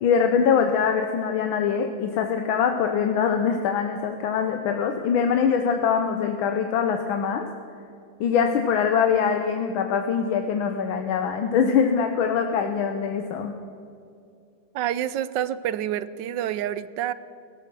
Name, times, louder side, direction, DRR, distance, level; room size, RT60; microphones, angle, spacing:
voice 1, 0.0-7.5 8.2-13.5, left 7 dB, 85° left, 5 dB, 1.6 m, -23 dB
voice 2, 14.7-17.1, right 11 dB, 75° right, 16 dB, 1.1 m, -28 dB
16.5 x 13.5 x 6.1 m, 2.5 s
omnidirectional pair, 2.2 m